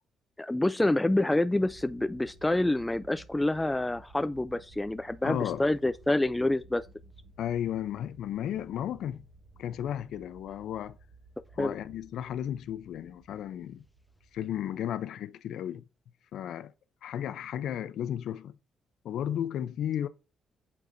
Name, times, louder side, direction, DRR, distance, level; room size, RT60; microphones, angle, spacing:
voice 1, 0.4-6.8 11.6-11.7, left 1 dB, 10° left, 0.3 m, -27 dB
sound 1, 1.6-14.8, right 2 dB, 60° right, 2.4 m, -56 dB
voice 2, 5.2-5.7 7.4-9.2 9.6-11.0 11.6-13.9 14.3-15.8 16.3-16.7 17.0-18.6 19.0-20.1, left 10 dB, 75° left, 0.5 m, -34 dB
8.6 x 4.6 x 2.6 m
cardioid pair, 90°, 0 cm